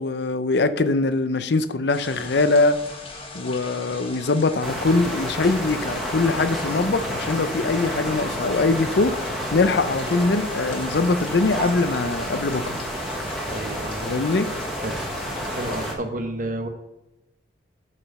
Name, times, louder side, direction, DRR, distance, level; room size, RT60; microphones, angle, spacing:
voice 1, 0.0-2.8 3.3-12.8 14.0-14.5, left 3 dB, 60° left, 0.5 m, -22 dB
sound 1, 1.9-15.9, left 2 dB, 30° left, 1.3 m, -39 dB
sound 2, 4.6-15.9, equal, ahead, 1.3 m, -30 dB
voice 2, 13.5-14.1 14.8-15.0 15.5-16.7, right 2 dB, 45° right, 1.0 m, -30 dB
8.8 x 5.0 x 5.3 m
head